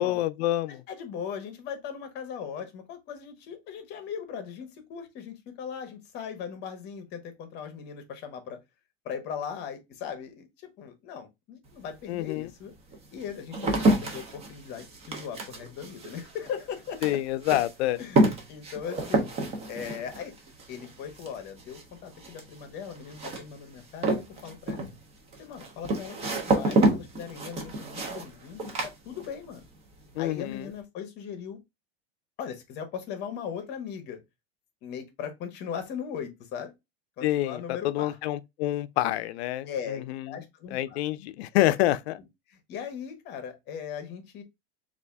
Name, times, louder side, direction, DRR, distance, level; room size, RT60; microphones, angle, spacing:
voice 1, 0.0-0.8 12.1-12.5 17.0-18.0 30.1-30.7 37.2-40.3 40.7-42.2, left 15 dB, 80° left, 0.5 m, -27 dB
voice 2, 0.7-8.6 9.0-12.7 13.1-17.2 18.0-19.3 19.7-20.3 20.7-24.1 24.4-24.8 25.4-29.6 30.2-31.6 32.4-34.2 34.8-36.7 37.2-38.2 39.7-41.0 41.6-41.8 42.5-44.4, left 7 dB, 35° left, 0.8 m, -39 dB
sound 1, 11.7-11.8 12.5-29.7 29.9-30.5, right 2 dB, 20° right, 0.5 m, -29 dB
3.4 x 2.5 x 3.3 m
supercardioid pair, 160°, 32 cm